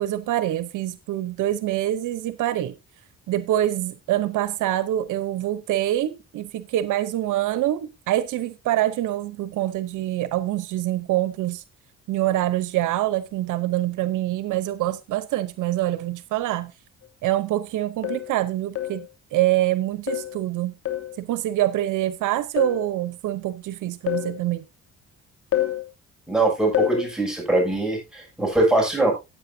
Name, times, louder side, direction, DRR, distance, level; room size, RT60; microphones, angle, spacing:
voice 1, 0.0-2.7 3.3-11.6 12.1-16.7 17.2-20.7 21.2-24.6, right 14 dB, 85° right, 0.9 m, -25 dB
sound 1, 17.0-17.1 18.0-18.3 18.8-19.1 20.1-20.4 20.9-21.2 22.6-22.9 24.1-24.4 25.5-25.8 26.7-27.1, left 13 dB, 50° left, 2.7 m, -26 dB
voice 2, 26.3-29.1, right 2 dB, ahead, 7.0 m, -22 dB
15.5 x 8.5 x 2.7 m
cardioid pair, 90°, 30 cm